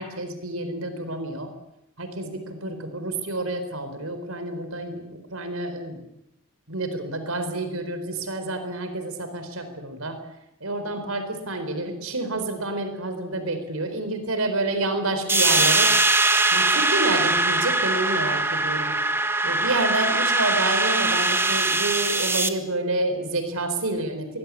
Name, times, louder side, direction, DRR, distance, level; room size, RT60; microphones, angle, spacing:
voice 1, 0.0-1.5 2.0-6.0 6.7-10.2 10.6-15.9 16.5-18.9 19.4-24.4, right 2 dB, 80° right, 9 dB, 4.4 m, -29 dB
sound 1, 15.3-22.5, right 2 dB, 10° right, 1.5 m, -21 dB
23.5 x 21.0 x 8.6 m, 0.81 s
head